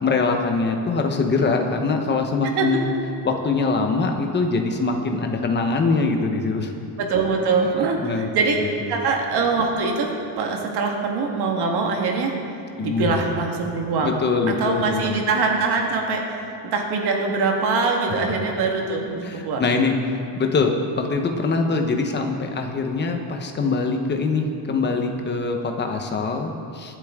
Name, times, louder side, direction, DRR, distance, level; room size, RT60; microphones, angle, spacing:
voice 1, 0.0-2.9 3.2-6.7 8.0-9.0 12.8-13.1 14.0-15.2 19.2-27.0, left 4 dB, 20° left, 4 dB, 1.0 m, -23 dB
voice 2, 2.4-2.8 7.0-12.3 12.8-14.2 14.5-19.7, right 4 dB, 50° right, 1 dB, 1.7 m, -23 dB
23.5 x 8.3 x 3.7 m, 2.5 s
cardioid pair, 170°, 50 cm